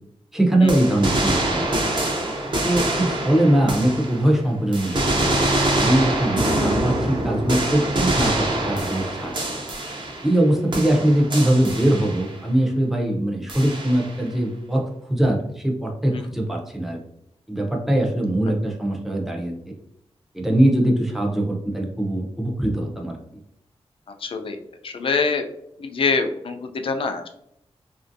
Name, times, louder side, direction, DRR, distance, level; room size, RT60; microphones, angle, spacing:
voice 1, 0.3-1.9 2.6-9.3 10.2-14.8 15.1-17.0 17.5-19.5 20.3-23.2, right 1 dB, 5° right, 0 dB, 0.5 m, -21 dB
sound 1, 0.7-4.4 4.7-10.4 10.7-12.4 13.5-14.2, right 1 dB, 45° right, 0.7 m, -25 dB
voice 2, 24.2-24.6 24.8-25.4 25.8-27.3, left 4 dB, 55° left, 6 dB, 0.4 m, -24 dB
2.9 x 2.6 x 2.5 m, 0.77 s
wide cardioid pair, 155°, 11 cm